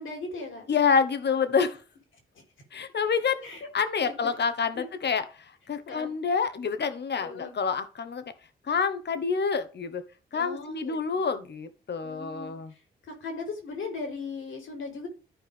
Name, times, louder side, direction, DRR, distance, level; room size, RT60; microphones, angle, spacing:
voice 1, 0.0-0.7 1.6-1.7 3.4-3.6 4.7-4.9 5.9-6.1 7.2-7.5 10.3-11.2 12.0-15.1, left 4 dB, 75° left, 3 dB, 4.0 m, -38 dB
voice 2, 0.7-1.8 2.7-3.5 3.7-8.3 8.6-10.0 10.3-12.7, left 5 dB, 55° left, 11 dB, 1.4 m, -27 dB
13.5 x 4.6 x 3.6 m, 0.35 s
supercardioid pair, 50°, 21 cm